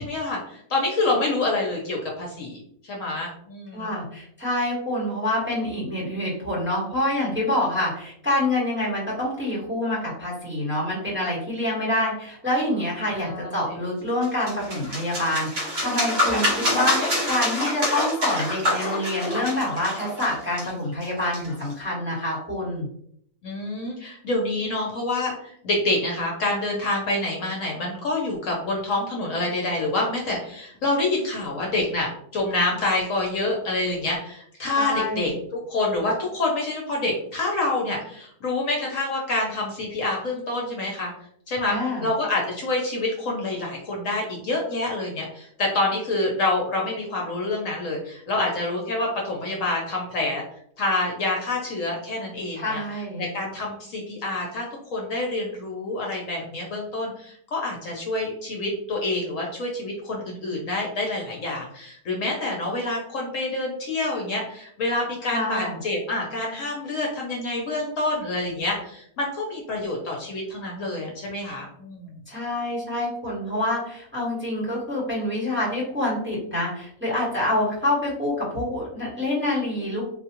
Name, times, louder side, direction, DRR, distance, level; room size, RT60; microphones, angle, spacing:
voice 1, 0.0-4.0 13.1-13.7 16.2-16.9 23.4-35.3 35.7-41.1 41.5-41.8 42.0-50.4 50.8-52.8 53.2-54.6 54.9-72.2, left 2 dB, 60° left, -1 dB, 1.0 m, -27 dB
voice 2, 3.7-22.9 34.7-35.4 41.6-42.1 52.5-53.2 65.3-65.8 72.3-80.1, left 1 dB, 10° right, -6 dB, 1.1 m, -26 dB
sound 1, 14.2-21.7, left 1 dB, 45° right, 1.2 m, -26 dB
3.9 x 2.3 x 2.9 m, 0.67 s
omnidirectional pair, 1.6 m